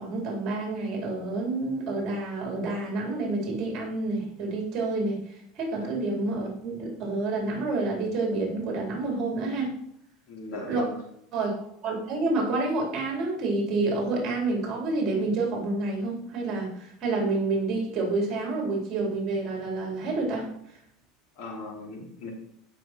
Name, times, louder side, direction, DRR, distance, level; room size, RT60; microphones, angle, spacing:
voice 1, 0.0-9.7 10.7-10.8 11.3-20.5, right 3 dB, 35° right, -1 dB, 4.2 m, -28 dB
voice 2, 10.3-10.9 21.4-22.3, left 2 dB, 55° left, -1 dB, 4.1 m, -37 dB
16.0 x 6.3 x 4.6 m, 0.71 s
supercardioid pair, 160°, 0 cm